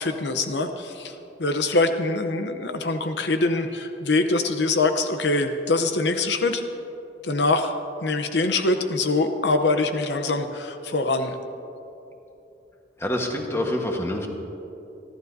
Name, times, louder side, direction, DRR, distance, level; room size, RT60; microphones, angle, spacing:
voice 1, 0.0-6.6 7.2-7.7 8.0-11.4, left 2 dB, 75° left, 7 dB, 0.8 m, -24 dB
voice 2, 13.0-14.3, left 1 dB, 15° left, 1 dB, 1.3 m, -26 dB
29.0 x 12.0 x 2.7 m, 2.9 s
head